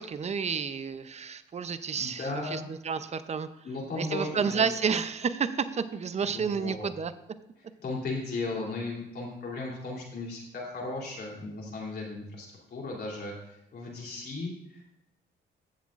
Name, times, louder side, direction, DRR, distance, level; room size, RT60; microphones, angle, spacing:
voice 1, 0.0-2.2 2.5-2.6 2.8-3.5 4.0-7.1, right 6 dB, 35° right, 12 dB, 0.6 m, -30 dB
voice 2, 1.7-2.7 3.6-4.6 6.2-6.9 7.8-13.3 13.7-14.8, left 3 dB, 55° left, -2 dB, 3.1 m, -36 dB
14.5 x 7.3 x 2.5 m, 0.82 s
cardioid pair, 90°, 20 cm